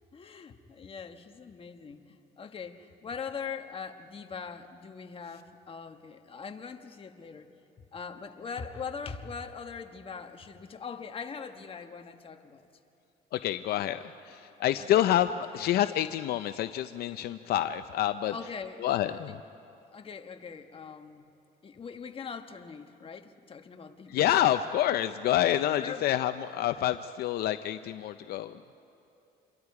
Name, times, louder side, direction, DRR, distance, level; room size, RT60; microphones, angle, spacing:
voice 1, 0.1-7.5 7.9-12.7 14.8-15.0 18.3-18.9 19.2-19.3 19.9-21.3 21.6-24.3 25.7-26.2, left 6 dB, 35° left, 6 dB, 1.3 m, -41 dB
voice 2, 13.3-18.3 18.8-19.4 24.1-28.7, left 12 dB, 70° left, 10 dB, 0.5 m, -28 dB
27.5 x 23.0 x 4.8 m, 2.8 s
cardioid pair, 110°, 17 cm